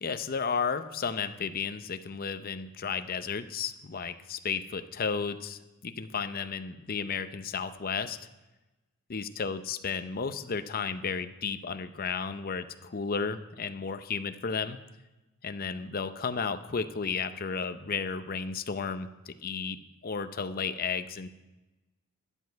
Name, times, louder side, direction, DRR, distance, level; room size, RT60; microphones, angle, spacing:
voice 1, 0.0-8.2 9.1-14.8 15.4-21.3, left 5 dB, 40° left, 10 dB, 0.6 m, -33 dB
12.0 x 10.0 x 4.6 m, 1.1 s
head